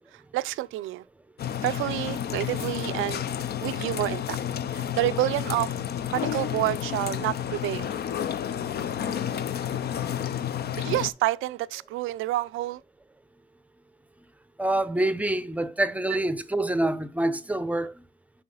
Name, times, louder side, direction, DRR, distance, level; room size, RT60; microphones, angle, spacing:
voice 1, 0.1-1.0 1.6-3.2 3.6-4.4 4.7-5.7 6.1-7.9 10.8-12.8, right 16 dB, 85° right, 0.4 m, -28 dB
sound 1, 1.4-11.1, left 9 dB, 55° left, 0.5 m, -31 dB
voice 2, 14.6-18.0, right 1 dB, 5° right, 0.6 m, -26 dB
6.0 x 5.6 x 3.8 m
cardioid pair, 90°, 20 cm